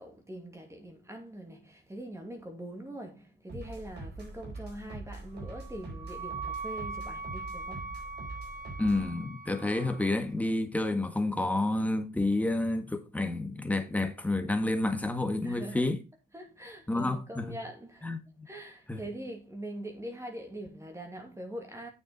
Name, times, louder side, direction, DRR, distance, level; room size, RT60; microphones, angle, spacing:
voice 1, 0.0-8.0 15.4-16.0 16.3-18.1 18.4-21.9, right 1 dB, 15° right, 2.5 m, -43 dB
sound 1, 3.5-9.1, right 2 dB, 60° right, 4.1 m, -43 dB
Wind instrument woodwind instrument, 5.4-10.2, right 4 dB, 40° right, 5.5 m, -41 dB
voice 2, 8.8-16.0 16.9-17.5 18.0-18.5 18.9-19.0, left 2 dB, 5° left, 1.6 m, -29 dB
8.8 x 6.9 x 4.1 m
cardioid pair, 90°, 20 cm